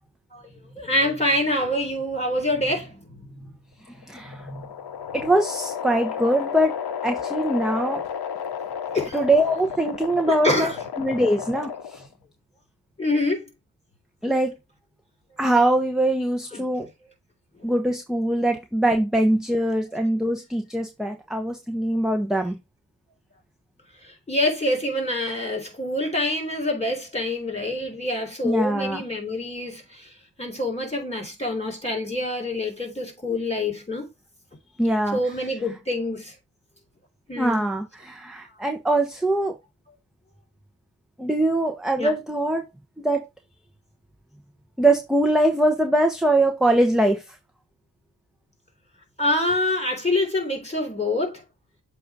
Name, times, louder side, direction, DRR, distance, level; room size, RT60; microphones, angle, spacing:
voice 1, 0.8-3.0 3.3-3.5 4.3-4.7 8.9-9.2 10.3-10.8 13.0-13.5 16.5-16.6 24.0-30.1 30.4-34.1 35.1-36.3 37.3-37.6 41.9-42.1 49.2-51.4, left 1 dB, 15° left, 3.4 m, -26 dB
sound 1, 3.9-12.1, left 7 dB, 65° left, 0.8 m, -32 dB
voice 2, 4.1-4.4 5.1-6.8 7.0-8.0 9.1-10.7 11.0-12.0 14.2-14.5 15.4-16.9 17.6-22.6 28.4-29.0 34.8-35.2 37.4-39.5 41.2-42.7 43.0-43.2 44.8-47.2, right 1 dB, ahead, 1.0 m, -22 dB
7.7 x 2.7 x 4.8 m
cardioid pair, 50°, 42 cm